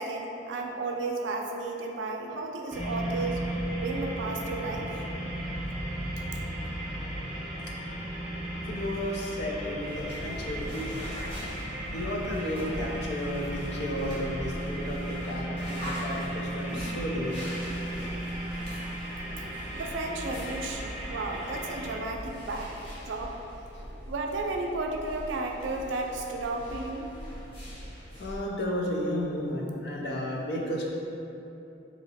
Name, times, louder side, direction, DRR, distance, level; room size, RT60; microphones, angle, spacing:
voice 1, 0.0-3.4 3.8-4.9 19.7-22.7 23.0-23.3 24.1-27.1, right 2 dB, 80° right, 2 dB, 0.4 m, -33 dB
sound 1, 2.7-22.0, right 1 dB, 5° right, 0.6 m, -35 dB
voice 2, 8.7-11.1 11.9-17.4 28.2-30.9, left 1 dB, 65° left, -2 dB, 0.5 m, -33 dB
sound 2, 9.9-28.4, equal, 30° left, 1.0 m, -42 dB
2.9 x 2.8 x 4.1 m, 2.9 s
head